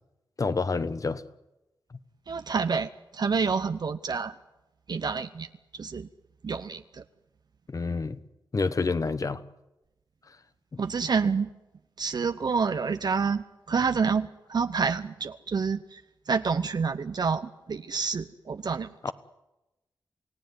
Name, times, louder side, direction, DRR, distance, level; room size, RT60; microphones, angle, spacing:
voice 1, 0.4-1.2 1.9-2.0 7.7-8.2 8.5-9.4 10.7-10.8 19.0-19.1, left 4 dB, 45° left, 13 dB, 1.2 m, -28 dB
voice 2, 2.3-4.3 4.9-6.1 6.4-7.0 10.8-11.5 12.0-16.0 16.3-18.9, right 5 dB, 60° right, 9 dB, 0.9 m, -28 dB
29.0 x 17.0 x 9.7 m, 0.99 s
wide cardioid pair, 100°, 8 cm